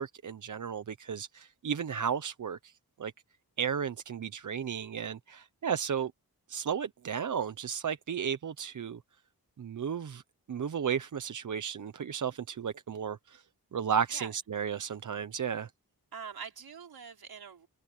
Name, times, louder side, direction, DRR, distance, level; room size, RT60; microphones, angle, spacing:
voice 1, 0.0-2.7 3.0-3.1 3.6-6.1 6.5-9.0 9.6-10.2 10.5-13.4 13.7-15.7, right 7 dB, 55° right, 0.9 m, -34 dB
voice 2, 16.1-17.7, right 6 dB, 75° right, 4.9 m, -44 dB
wide cardioid pair, 130°, 37 cm